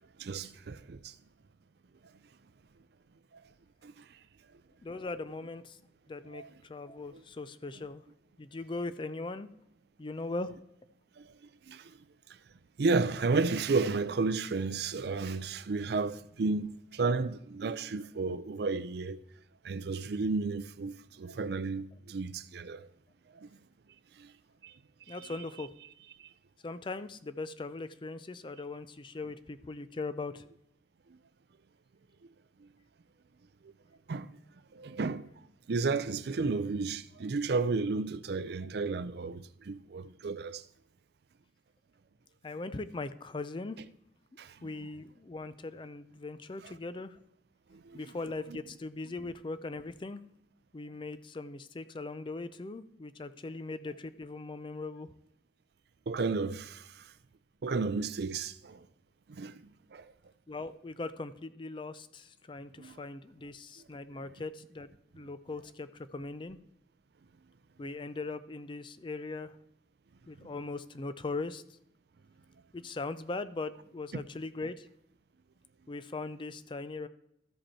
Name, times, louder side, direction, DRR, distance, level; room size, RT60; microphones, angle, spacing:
voice 1, 0.2-1.2 3.3-3.4 3.8-4.1 6.3-6.5 7.1-7.2 11.2-11.3 11.6-12.0 12.8-19.2 19.6-22.9 23.3-23.5 24.2-24.3 24.6-24.7 25.1-25.4 26.2-26.3 31.1-31.2 32.6-32.7 33.6-33.7 34.1-34.3 34.7-35.3 35.7-40.6 44.4-44.9 46.6-46.7 47.7-48.1 48.5-48.6 49.1-49.2 56.1-57.1 57.6-58.9 59.3-59.6 59.9-60.1 62.8-63.0 64.1-64.2 70.4-70.5, right 4 dB, 60° right, 0.4 m, -33 dB
voice 2, 4.8-5.8 6.1-8.0 8.4-9.5 10.0-10.6 25.1-25.7 26.6-30.5 42.4-43.8 44.6-47.2 47.9-50.2 50.7-55.1 60.5-66.6 67.8-69.5 70.3-71.6 72.7-74.9 75.9-77.1, left 3 dB, 25° left, 0.4 m, -40 dB
13.5 x 5.3 x 4.3 m
head